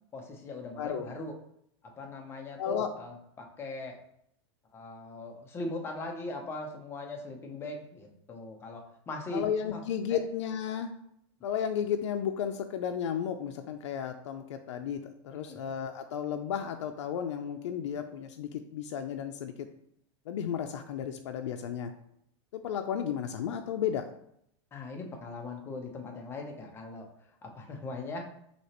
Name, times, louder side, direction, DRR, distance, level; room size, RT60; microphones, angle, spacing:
voice 1, 0.1-1.3 2.0-4.0 4.7-9.4 9.7-9.8 15.3-15.6 24.7-27.1 27.4-28.3, left 2 dB, 15° left, 2 dB, 0.6 m, -40 dB
voice 2, 2.6-2.9 9.3-10.9 11.4-19.7 20.3-21.9 22.5-24.0, left 8 dB, 85° left, 5 dB, 0.4 m, -33 dB
6.1 x 2.9 x 2.9 m, 0.73 s
supercardioid pair, 155°, 15 cm